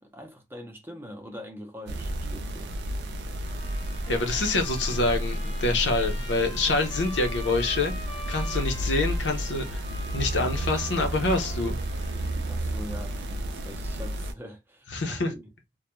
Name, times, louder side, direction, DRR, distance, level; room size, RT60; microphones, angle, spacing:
voice 1, 0.0-2.7 12.4-15.4, equal, 10° right, 0.5 m, -43 dB
sound 1, 1.9-14.3, right 1 dB, 65° right, 0.4 m, -31 dB
Trumpet, 3.4-12.6, left 1 dB, 25° left, 0.8 m, -44 dB
voice 2, 4.1-7.9 8.3-9.8 10.1-11.8 14.9-15.3, left 3 dB, 70° left, 0.6 m, -26 dB
2.2 x 2.1 x 2.9 m
head